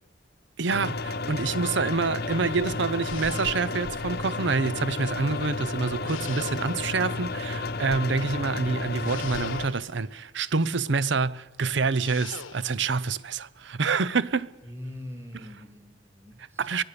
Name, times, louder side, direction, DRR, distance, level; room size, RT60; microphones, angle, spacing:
voice 1, 0.6-14.5 16.6-16.8, right 4 dB, 65° right, 0.7 m, -27 dB
sound 1, 0.7-9.7, left 3 dB, 50° left, 0.9 m, -32 dB
sound 2, 3.0-4.0 6.1-7.0 9.0-10.1 12.0-12.8, left 7 dB, 90° left, 1.1 m, -43 dB
voice 2, 14.6-16.7, left 1 dB, 15° right, 2.5 m, -42 dB
23.5 x 16.5 x 6.8 m
head